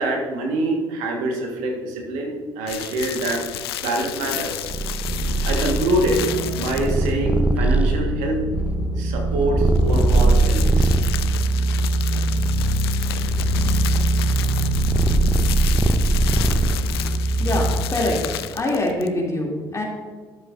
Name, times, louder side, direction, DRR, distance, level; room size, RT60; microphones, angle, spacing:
voice 1, 0.0-3.4 3.8-4.7 5.4-8.4 9.0-10.9, right 1 dB, 65° right, 1 dB, 1.6 m, -25 dB
sound 1, 2.7-7.2 9.6-19.2, left 12 dB, 80° left, 0.4 m, -32 dB
Purr, 4.6-11.2 11.8-17.1, right 2 dB, 10° right, 0.8 m, -22 dB
sound 2, 5.0-17.7, right 2 dB, 50° right, 2.8 m, -24 dB
voice 2, 17.4-18.2 18.5-19.8, left 1 dB, 25° left, -2 dB, 2.8 m, -24 dB
12.5 x 7.7 x 2.6 m, 1.5 s
hypercardioid pair, 55°, 13 cm